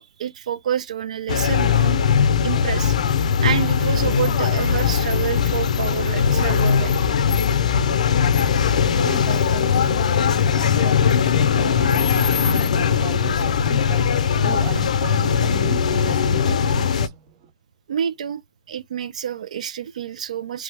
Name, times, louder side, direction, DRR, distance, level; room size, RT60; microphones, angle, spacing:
voice 1, 0.0-2.0 2.4-3.0 3.4-7.0 9.2-9.3 17.9-18.4 18.7-20.6, right 9 dB, 80° right, 0.4 m, -28 dB
sound 1, 1.3-17.1, left 7 dB, 80° left, 0.5 m, -19 dB
voice 2, 9.0-17.2, right 8 dB, 35° right, 0.6 m, -36 dB
3.1 x 2.1 x 3.2 m
hypercardioid pair, 160°, 4 cm